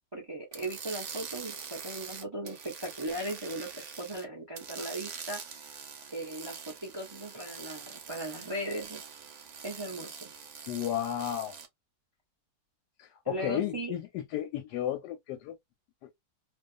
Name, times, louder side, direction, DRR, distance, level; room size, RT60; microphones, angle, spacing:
voice 1, 0.1-5.7 6.1-9.0 9.6-10.3 13.3-13.9, right 1 dB, 45° right, 0.3 m, -38 dB
sound 1, 0.5-4.2 4.5-11.7, right 6 dB, 60° right, 0.8 m, -44 dB
voice 2, 10.7-11.5 13.0-15.6 16.0-16.2, left 11 dB, 90° left, 1.2 m, -33 dB
2.5 x 2.3 x 2.4 m
omnidirectional pair, 1.7 m